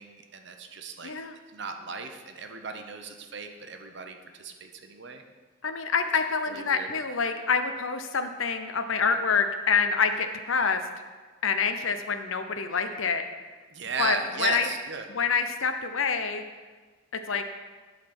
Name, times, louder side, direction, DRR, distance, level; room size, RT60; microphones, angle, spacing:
voice 1, 0.0-1.1 1.5-5.2 6.5-6.9 13.7-15.0, right 5 dB, 55° right, 5 dB, 0.8 m, -36 dB
voice 2, 1.0-1.4 5.6-10.8 11.4-13.2 14.0-14.7 15.1-16.4 17.1-17.4, left 5 dB, 70° left, 8 dB, 0.7 m, -27 dB
11.5 x 4.1 x 6.1 m, 1.4 s
head